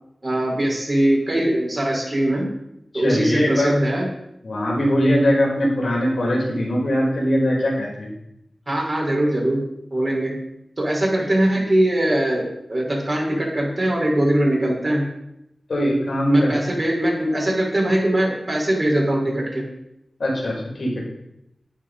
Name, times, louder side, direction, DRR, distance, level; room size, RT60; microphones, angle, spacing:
voice 1, 0.2-2.5 2.9-4.1 8.7-10.4 10.8-15.1 16.3-19.7, right 1 dB, 35° right, -2 dB, 5.3 m, -21 dB
voice 2, 2.9-3.8 4.4-8.1 15.7-16.5 20.2-21.0, equal, 75° left, -2 dB, 4.7 m, -21 dB
11.5 x 9.8 x 5.5 m, 0.83 s
wide cardioid pair, 75°, 0 cm